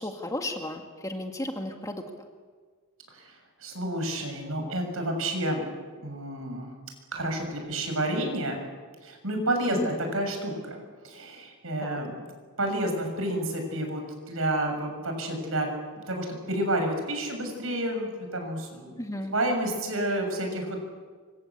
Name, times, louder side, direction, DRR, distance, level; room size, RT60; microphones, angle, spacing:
voice 1, 0.0-2.0 9.7-9.9 11.8-12.0 19.0-19.3, left 1 dB, 15° left, 4 dB, 2.1 m, -34 dB
voice 2, 3.6-5.6 6.0-6.7 7.1-8.6 9.0-12.3 12.6-14.0 14.3-15.7 16.1-19.0 19.3-20.8, right 1 dB, 70° right, 4 dB, 7.0 m, -30 dB
26.0 x 24.5 x 8.6 m, 1.5 s
head